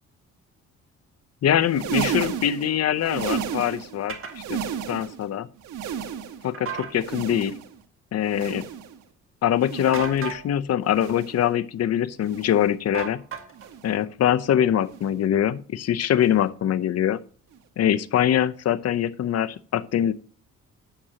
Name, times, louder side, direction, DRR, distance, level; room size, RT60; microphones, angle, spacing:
voice 1, 1.4-4.2 4.5-4.6 4.9-5.5 6.4-7.5 8.1-8.7 9.4-13.2 13.8-17.2 17.8-20.1, left 10 dB, 55° left, 14 dB, 0.7 m, -23 dB
sound 1, 1.6-4.0 4.3-5.3 5.6-6.5 6.9-7.8 8.2-9.0 9.5-10.2 10.9-11.5 12.2-12.7 13.5-14.0 14.9-15.2 16.2-16.4 17.5-17.6, right 8 dB, 85° right, 1.3 m, -33 dB
sound 2, 4.1-4.4 6.5-6.9 9.9-10.4 12.9-13.7, right 6 dB, 45° right, 1.9 m, -34 dB
11.5 x 8.7 x 2.9 m, 0.41 s
cardioid pair, 90°, 30 cm